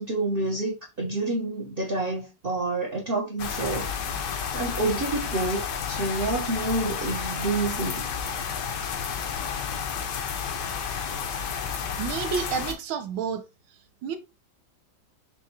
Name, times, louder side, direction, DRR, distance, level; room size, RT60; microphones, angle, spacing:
voice 1, 0.0-3.8 4.5-5.6 5.9-8.0, right 2 dB, 45° right, 0.7 m, -28 dB
sound 1, 3.4-12.7, left 7 dB, 70° left, 1.3 m, -31 dB
voice 2, 12.0-13.4 14.0-14.2, right 6 dB, 90° right, 1.5 m, -29 dB
5.9 x 2.3 x 2.8 m
omnidirectional pair, 2.2 m